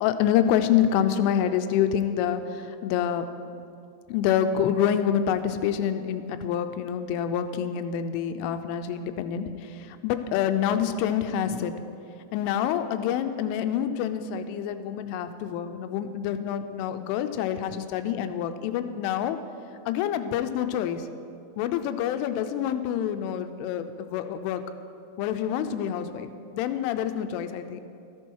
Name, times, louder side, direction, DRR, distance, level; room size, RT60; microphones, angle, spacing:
voice 1, 0.0-3.3 4.1-9.5 9.8-11.7 12.3-19.4 19.9-21.1 21.6-24.6 25.2-27.8, left 9 dB, 90° left, 9 dB, 3.1 m, -27 dB
13.0 x 11.0 x 4.6 m, 2.5 s
omnidirectional pair, 5.6 m